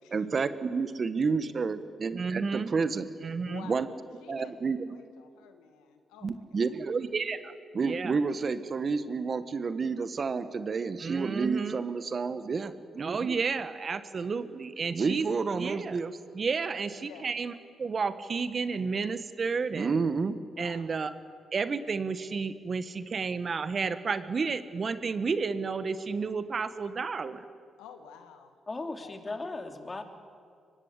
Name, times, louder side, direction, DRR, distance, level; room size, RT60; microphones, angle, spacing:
voice 1, 0.1-3.9 4.3-4.8 6.2-17.5 17.8-21.1 21.5-27.4, right 5 dB, 50° right, 12 dB, 1.4 m, -30 dB
voice 2, 3.4-3.9 4.2-6.7 17.0-17.3 20.5-20.8 27.8-29.1, left 8 dB, 90° left, 7 dB, 1.8 m, -50 dB
voice 3, 28.7-30.0, left 2 dB, 30° left, 5 dB, 2.9 m, -37 dB
24.0 x 19.0 x 8.3 m, 2.2 s
supercardioid pair, 55°, 0 cm